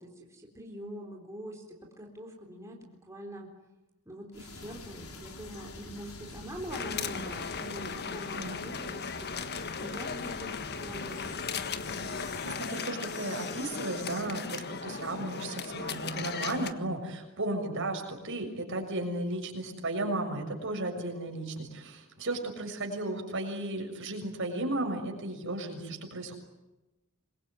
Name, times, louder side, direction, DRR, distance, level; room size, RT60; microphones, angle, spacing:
voice 1, 0.0-3.5 4.1-9.4 9.8-11.4, equal, 15° right, -1 dB, 4.0 m, -44 dB
sound 1, 4.3-12.6, left 2 dB, 75° left, 4.0 m, -46 dB
sound 2, 6.7-16.7, left 5 dB, 50° left, 1.5 m, -37 dB
voice 2, 12.1-26.4, right 2 dB, 60° right, 3 dB, 6.6 m, -35 dB
26.5 x 22.5 x 9.6 m, 1.0 s
head